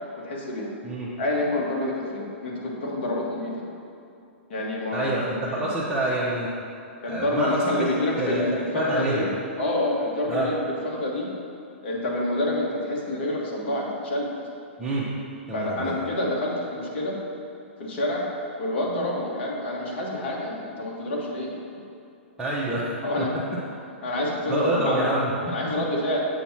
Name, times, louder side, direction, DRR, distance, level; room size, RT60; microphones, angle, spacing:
voice 1, 0.2-0.7 1.2-3.6 4.5-5.2 5.4-5.7 7.0-9.3 9.6-11.3 11.8-14.3 15.5-17.2 17.8-18.3 18.6-21.5 23.0-23.3 24.0-25.1 25.5-26.2, left 1 dB, 60° left, -2 dB, 1.3 m, -27 dB
voice 2, 4.9-6.5 7.1-7.9 8.2-8.4 8.7-9.2 10.3-10.5 14.8-15.1 15.5-16.0 22.4-22.9 23.2-23.4 24.5-25.6, right 2 dB, 10° right, -8 dB, 0.8 m, -27 dB
7.2 x 2.9 x 5.7 m, 2.6 s
hypercardioid pair, 130°, 7 cm